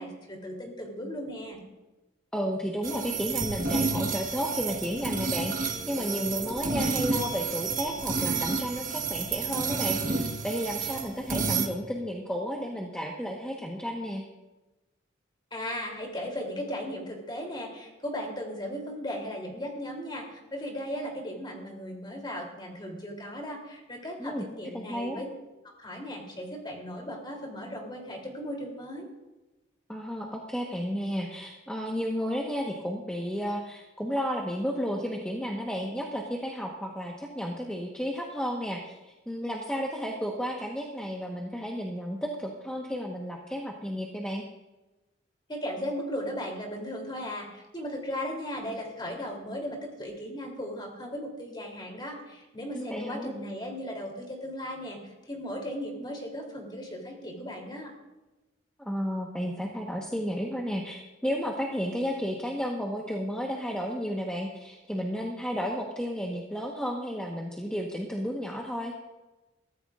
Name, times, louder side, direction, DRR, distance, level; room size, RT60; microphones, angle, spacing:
voice 1, 0.0-1.6 15.5-25.3 25.8-29.1 45.5-55.0 55.2-57.9, equal, 25° left, 0 dB, 3.2 m, -36 dB
voice 2, 2.3-14.2 24.2-24.5 24.7-25.2 29.9-44.4 52.7-53.3 58.8-68.9, equal, 5° left, -1 dB, 1.2 m, -32 dB
sound 1, 2.8-11.7, right 4 dB, 45° right, 1.3 m, -30 dB
22.5 x 14.5 x 2.5 m, 1.1 s
head